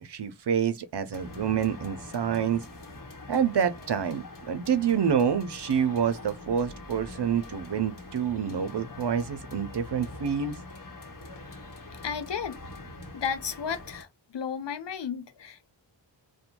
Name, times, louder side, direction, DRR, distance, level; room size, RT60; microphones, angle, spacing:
voice 1, 0.0-2.6 3.3-10.6, right 7 dB, 65° right, 0.6 m, -27 dB
sound 1, 1.1-14.0, left 2 dB, 45° left, 1.0 m, -44 dB
voice 2, 12.0-12.6 13.1-14.1 14.3-15.7, left 7 dB, 70° left, 0.7 m, -33 dB
2.6 x 2.2 x 2.9 m
wide cardioid pair, 55°, 44 cm